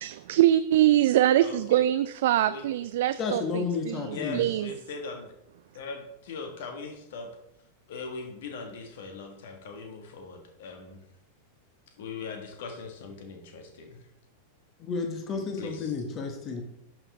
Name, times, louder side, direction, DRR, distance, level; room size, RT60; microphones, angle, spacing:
voice 1, 0.0-4.7, right 13 dB, 55° right, 12 dB, 0.3 m, -24 dB
voice 2, 1.4-1.9 2.5-2.7 4.1-5.3 5.7-7.3 7.9-11.0 12.0-14.0 15.3-15.9, left 4 dB, 55° left, 4 dB, 1.7 m, -40 dB
voice 3, 3.2-4.4 14.8-16.6, left 4 dB, 30° left, 4 dB, 1.5 m, -31 dB
11.0 x 6.2 x 3.5 m, 0.80 s
figure-of-eight pair, 90°, 0 cm